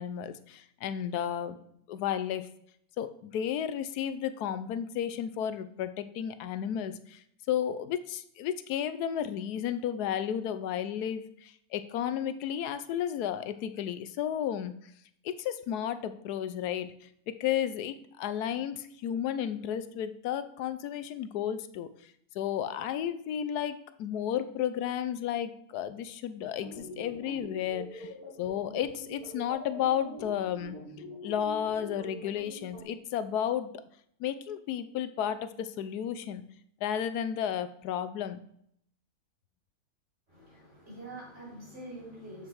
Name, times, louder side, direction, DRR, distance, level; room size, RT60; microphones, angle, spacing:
voice 1, 0.0-1.6 1.9-2.5 3.0-14.7 15.2-21.9 22.3-28.1 28.4-30.8 31.2-33.8 34.2-36.4 36.8-38.4, left 9 dB, 90° left, 12 dB, 1.2 m, -33 dB
sound 1, 26.6-32.8, equal, 40° left, 2.6 m, -44 dB
voice 2, 40.3-42.5, right 1 dB, 45° right, -7 dB, 4.2 m, -45 dB
7.4 x 6.1 x 4.6 m, 0.69 s
omnidirectional pair, 1.6 m